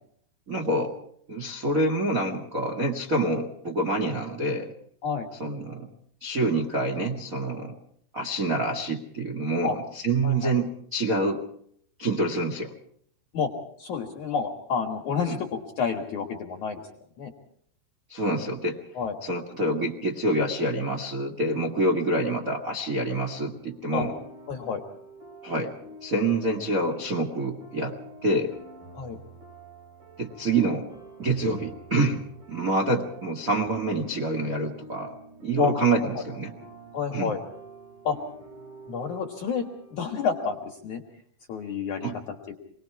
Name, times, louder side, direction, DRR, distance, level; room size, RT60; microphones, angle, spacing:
voice 1, 0.5-0.9 1.3-4.7 5.4-5.9 6.2-7.8 8.1-11.4 12.0-12.7 15.2-15.4 18.1-18.8 19.2-24.1 25.4-28.5 30.2-30.9 31.2-35.1 35.4-36.5 37.1-37.3 42.0-42.1, right 2 dB, 35° right, -1 dB, 1.4 m, -27 dB
voice 2, 13.8-16.9 17.2-17.3 18.9-19.2 23.9-24.1 24.5-24.8 28.9-29.2 35.6-35.7 36.9-37.4 38.0-38.2 38.9-41.0 41.5-42.1, left 6 dB, 55° left, 2 dB, 2.6 m, -29 dB
sound 1, 22.9-40.6, right 1 dB, 55° right, 6.7 m, -47 dB
27.5 x 20.5 x 4.7 m, 0.66 s
omnidirectional pair, 4.8 m